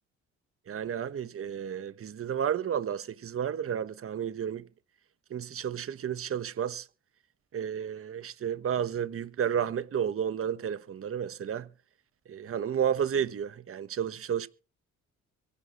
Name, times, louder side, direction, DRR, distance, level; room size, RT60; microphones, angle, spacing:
voice 1, 0.7-4.6 5.3-6.8 7.5-11.7 12.3-14.5, right 8 dB, 45° right, 1.2 m, -32 dB
23.5 x 11.5 x 3.1 m
cardioid pair, 90°, 30 cm